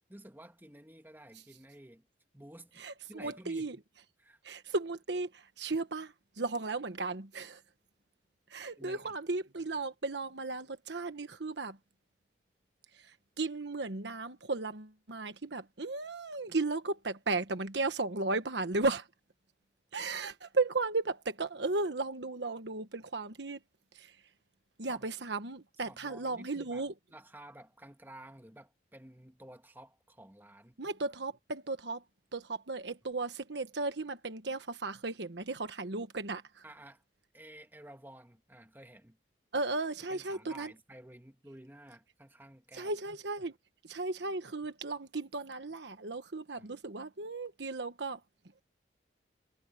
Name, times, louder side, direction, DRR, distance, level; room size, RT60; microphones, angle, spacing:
voice 1, 0.1-2.0 2.3-3.8 4.2-4.4 8.8-9.2 24.9-25.1 25.9-26.9 27.1-30.8 36.6-37.0 37.3-39.2 40.1-42.9 46.5-46.8, right 1 dB, 10° right, 2.0 m, -52 dB
voice 2, 2.8-3.8 4.4-7.6 8.5-11.8 12.9-19.1 19.9-23.6 23.9-24.2 24.8-26.9 30.8-32.0 32.3-36.6 39.5-40.7 42.7-43.5 43.8-48.2, right 3 dB, 75° right, 1.3 m, -35 dB
head